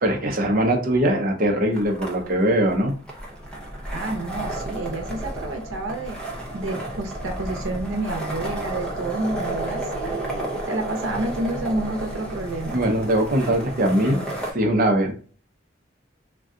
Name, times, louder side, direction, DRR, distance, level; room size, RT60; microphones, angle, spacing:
voice 1, 0.0-2.9 12.7-14.2 14.5-15.1, right 1 dB, 45° right, 3 dB, 0.6 m, -21 dB
sound 1, 1.7-14.5, right 1 dB, 5° left, 0.6 m, -32 dB
voice 2, 3.9-6.2 6.5-12.8, right 2 dB, 90° right, 3 dB, 0.7 m, -29 dB
2.6 x 2.2 x 3.6 m, 0.39 s
head